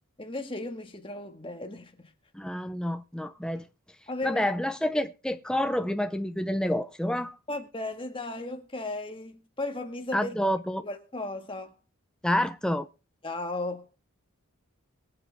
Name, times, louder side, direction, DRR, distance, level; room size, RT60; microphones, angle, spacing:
voice 1, 0.2-2.1 4.1-4.5 7.5-10.4 10.8-11.8 13.2-13.9, left 2 dB, 25° left, 1.7 m, -35 dB
voice 2, 2.3-3.7 4.2-7.4 10.1-10.8 12.2-12.9, left 1 dB, 5° left, 0.5 m, -28 dB
23.0 x 7.8 x 3.5 m
head